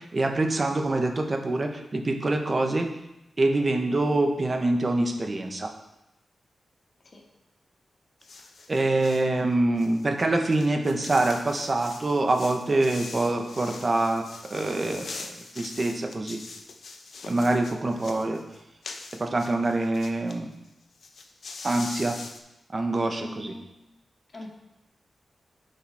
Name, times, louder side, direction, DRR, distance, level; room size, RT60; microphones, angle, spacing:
voice 1, 0.0-2.9 3.4-5.7 8.7-14.2 14.5-15.2 15.5-16.4 17.2-18.4 19.2-20.5 21.6-22.2 22.7-23.5, right 2 dB, 45° right, 3 dB, 1.2 m, -25 dB
sound 1, 8.2-9.3 9.8-20.4 20.6-20.7 20.9-22.4, left 4 dB, 70° left, 0.9 m, -43 dB
voice 2, 23.2-23.7 24.3-24.5, left 1 dB, 55° left, -1 dB, 2.2 m, -40 dB
9.8 x 5.6 x 3.6 m, 0.91 s
cardioid pair, 45°, 0 cm